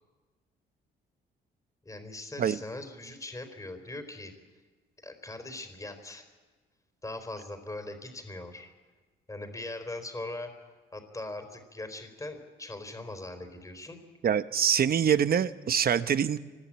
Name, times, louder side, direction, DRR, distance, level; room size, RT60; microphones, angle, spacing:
voice 1, 1.8-4.3 5.0-6.3 7.0-8.7 9.3-10.5 10.9-14.0, left 2 dB, 15° left, 7 dB, 3.8 m, -40 dB
voice 2, 14.2-16.4, right 8 dB, 50° right, 12 dB, 1.1 m, -25 dB
25.0 x 20.5 x 8.7 m, 1.3 s
cardioid pair, 90°, 20 cm